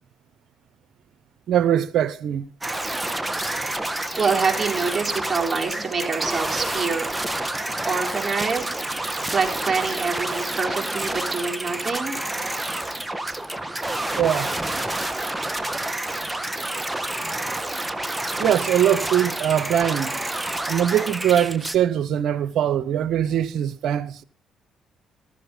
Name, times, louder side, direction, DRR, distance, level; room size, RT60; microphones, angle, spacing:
voice 1, 1.5-2.5 14.2-14.5 18.4-20.2 20.7-24.2, right 10 dB, 70° right, 0.9 m, -22 dB
sound 1, 2.6-21.8, right 1 dB, 10° right, 1.4 m, -28 dB
voice 2, 4.2-7.1 7.8-8.7 9.0-12.1, right 5 dB, 25° right, 4.3 m, -26 dB
14.5 x 13.0 x 3.9 m
supercardioid pair, 60°, 0 cm